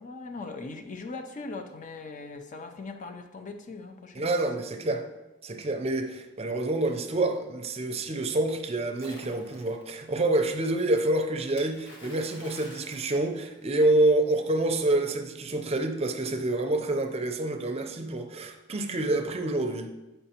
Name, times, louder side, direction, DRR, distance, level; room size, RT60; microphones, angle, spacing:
voice 1, 0.0-4.4, left 3 dB, 40° left, 6 dB, 0.5 m, -40 dB
voice 2, 4.1-5.0 5.4-19.9, right 2 dB, 30° right, 6 dB, 0.5 m, -27 dB
Splash splatter, 9.0-9.9 11.6-14.0, left 1 dB, 65° left, 1.4 m, -49 dB
7.9 x 5.5 x 2.9 m, 1.1 s
head